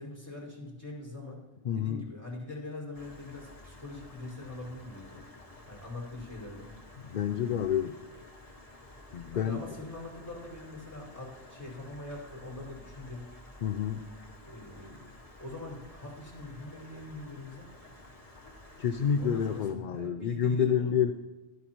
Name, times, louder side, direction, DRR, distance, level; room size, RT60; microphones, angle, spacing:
voice 1, 0.0-1.4 1.7-5.2 5.7-6.7 7.2-7.9 9.3-13.3 14.4-15.1 15.4-17.7 19.2-21.1, left 2 dB, 15° left, -4 dB, 5.1 m, -43 dB
voice 2, 1.6-2.1 7.0-8.0 9.1-9.6 13.6-14.0 18.8-21.1, left 8 dB, 55° left, 9 dB, 0.6 m, -29 dB
Stream, 2.9-19.7, left 1 dB, 35° left, 1.8 m, -52 dB
16.0 x 14.0 x 3.0 m, 1.2 s
omnidirectional pair, 1.1 m